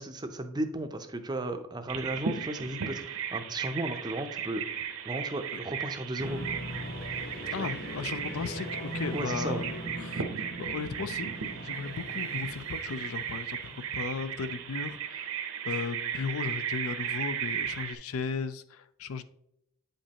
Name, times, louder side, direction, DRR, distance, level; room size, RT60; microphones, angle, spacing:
voice 1, 0.0-4.7 5.0-6.4 7.6-7.7 9.1-9.6, right 1 dB, 20° right, 7 dB, 0.5 m, -35 dB
Bird vocalization bird call bird song, 1.9-17.9, right 8 dB, 70° right, 0.7 m, -36 dB
sound 1, 6.2-14.9, right 1 dB, 45° left, 1.4 m, -40 dB
voice 2, 7.5-11.3 11.6-15.3 15.7-19.2, left 5 dB, 70° left, 12 dB, 0.4 m, -36 dB
8.7 x 5.3 x 2.8 m, 0.80 s
head